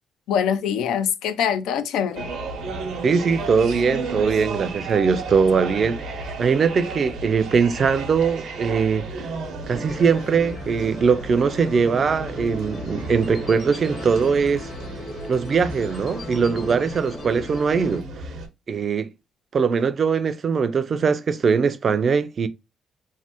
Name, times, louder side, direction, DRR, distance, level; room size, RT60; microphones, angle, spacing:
voice 1, 0.3-2.3, left 8 dB, 90° left, 0.3 m, -23 dB
sound 1, 2.2-18.5, right 3 dB, 80° right, 0.8 m, -34 dB
voice 2, 3.0-9.3 9.7-14.7 15.3-18.1 18.7-19.1 19.5-22.5, right 5 dB, 45° right, 0.4 m, -21 dB
sound 2, 9.7-18.0, left 2 dB, 50° left, 0.9 m, -38 dB
3.1 x 2.1 x 2.8 m
cardioid pair, 90°, 0 cm